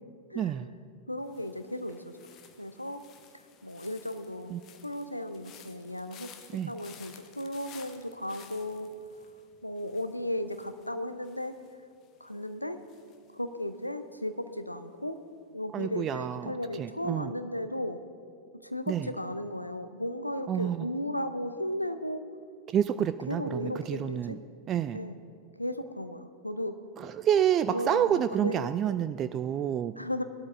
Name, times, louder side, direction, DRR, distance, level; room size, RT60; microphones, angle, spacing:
voice 1, 0.3-0.7 4.5-4.6 6.5-6.7 15.7-17.3 18.9-19.1 20.5-20.9 22.7-24.4 24.7-25.0 27.0-29.9, right 9 dB, 30° right, 11 dB, 0.3 m, -29 dB
voice 2, 1.1-2.2 2.6-3.0 3.3-4.5 4.8-6.3 6.7-8.9 9.6-11.6 12.2-12.8 13.3-15.2 15.5-18.0 18.6-22.2 23.3-24.4 24.9-25.2 25.6-26.8 27.7-28.7 30.0-30.2, left 1 dB, 85° left, 10 dB, 0.6 m, -35 dB
sound 1, 1.2-14.3 14.5-15.0, left 8 dB, 35° left, 0.9 m, -55 dB
19.0 x 12.5 x 2.6 m, 2.3 s
figure-of-eight pair, 90°, 0 cm